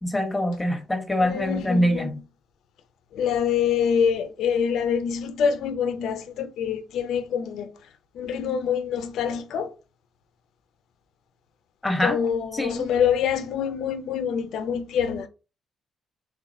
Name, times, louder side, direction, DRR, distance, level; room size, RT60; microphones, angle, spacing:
voice 1, 0.0-2.2 11.8-12.2 12.5-12.9, left 1 dB, 10° left, 1.2 m, -24 dB
voice 2, 1.2-2.1 3.1-7.7 8.1-9.7 12.0-15.3, left 7 dB, 80° left, 0.5 m, -25 dB
3.8 x 2.3 x 4.0 m
cardioid pair, 90°, 0 cm